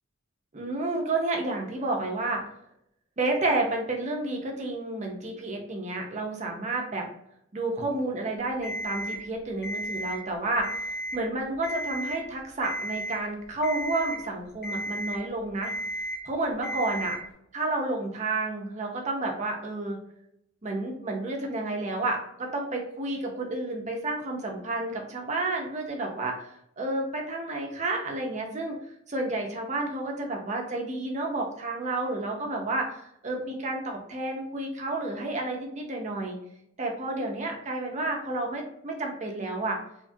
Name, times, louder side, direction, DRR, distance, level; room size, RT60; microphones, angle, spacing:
voice 1, 0.5-2.4 3.2-7.1 7.5-15.7 16.3-17.2 17.5-20.0 20.6-28.8 29.1-36.4 36.8-39.8, right 2 dB, 35° right, 1 dB, 0.5 m, -30 dB
Alarm, 8.6-9.2 9.6-10.2 10.6-11.2 11.6-12.2 12.6-13.2 13.6-14.2 14.6-15.2 15.6-16.2 16.6-17.2, right 1 dB, 50° left, 1.1 m, -33 dB
2.8 x 2.3 x 2.6 m, 0.75 s
head